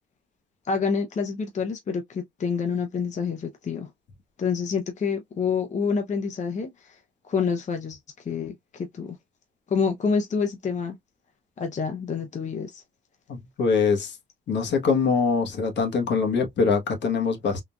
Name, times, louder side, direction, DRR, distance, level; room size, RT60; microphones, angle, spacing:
voice 1, 0.6-3.9 4.4-7.0 7.3-9.2 9.7-11.0 11.6-12.8, left 5 dB, 35° left, 0.6 m, -27 dB
voice 2, 13.3-14.2 14.5-17.6, left 5 dB, 65° left, 1.2 m, -23 dB
3.7 x 2.4 x 2.2 m
cardioid pair, 90°, 20 cm